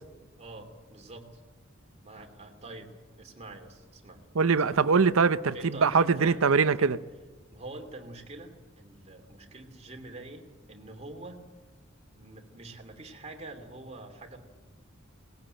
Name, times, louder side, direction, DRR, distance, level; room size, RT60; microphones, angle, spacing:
voice 1, 0.4-1.4 2.0-2.9 3.2-4.2 4.7-4.8 5.5-6.9 7.5-10.4 10.7-11.4 12.1-14.4, right 2 dB, 30° right, 2.7 m, -45 dB
voice 2, 4.4-7.0, right 5 dB, 85° right, 0.7 m, -23 dB
19.0 x 17.0 x 8.9 m
head